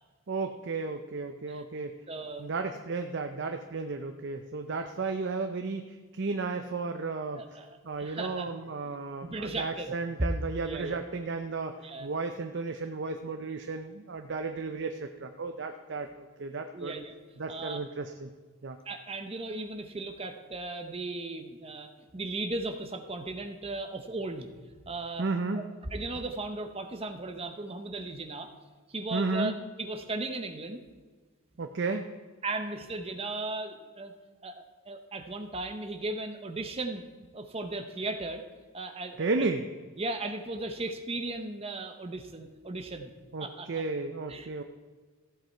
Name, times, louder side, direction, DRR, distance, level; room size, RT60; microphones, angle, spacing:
voice 1, 0.3-1.9 2.4-7.4 7.8-17.0 17.4-18.3 18.6-18.8 25.2-25.6 29.1-29.5 31.6-32.1 39.2-39.6 43.3-44.6, right 3 dB, 55° right, 6 dB, 0.6 m, -33 dB
voice 2, 2.1-2.5 7.3-8.5 9.2-10.3 10.6-11.0 11.8-12.1 16.0-16.1 16.7-17.2 17.5-17.8 18.9-24.5 24.9-25.3 25.5-25.6 25.9-28.5 28.9-30.8 32.4-34.1 34.4-37.0 37.3-38.4 38.7-39.5 40.0-43.1 43.4-43.7 44.3-44.5, right 2 dB, 30° right, 7 dB, 0.8 m, -36 dB
14.5 x 7.7 x 4.5 m, 1.5 s
head